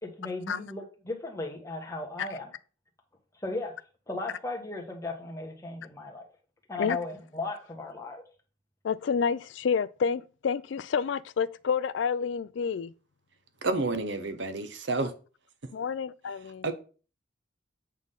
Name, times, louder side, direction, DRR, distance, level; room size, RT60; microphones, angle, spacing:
voice 1, 0.0-2.5 3.4-3.7 4.1-6.3 6.7-8.2, left 2 dB, 15° left, 1.4 m, -36 dB
voice 2, 8.8-12.9 15.7-16.7, left 6 dB, 70° left, 0.4 m, -29 dB
voice 3, 13.6-15.1 16.6-16.7, right 3 dB, 65° right, 1.0 m, -29 dB
8.3 x 3.7 x 5.5 m
head